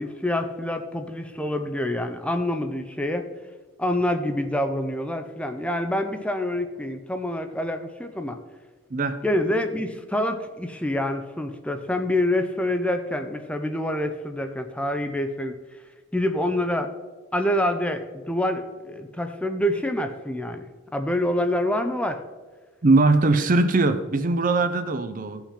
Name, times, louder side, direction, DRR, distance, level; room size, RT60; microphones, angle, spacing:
voice 1, 0.0-3.3 3.8-8.4 9.2-15.6 16.1-16.9 17.3-22.2, left 1 dB, 5° left, 0.6 m, -26 dB
voice 2, 8.9-9.2 22.8-25.4, right 3 dB, 45° right, 0.6 m, -20 dB
15.0 x 5.8 x 4.2 m
head